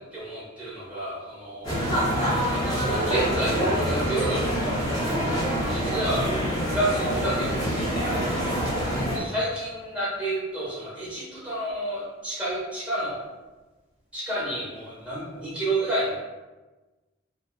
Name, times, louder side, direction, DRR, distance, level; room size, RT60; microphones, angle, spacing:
voice 1, 0.1-1.7 2.5-4.8 5.7-6.3 6.7-8.1 9.1-13.2 14.1-16.2, right 1 dB, 5° right, -10 dB, 1.1 m, -30 dB
sound 1, 1.6-9.2, equal, 20° left, 0.6 m, -26 dB
2.4 x 2.4 x 2.3 m, 1.2 s
head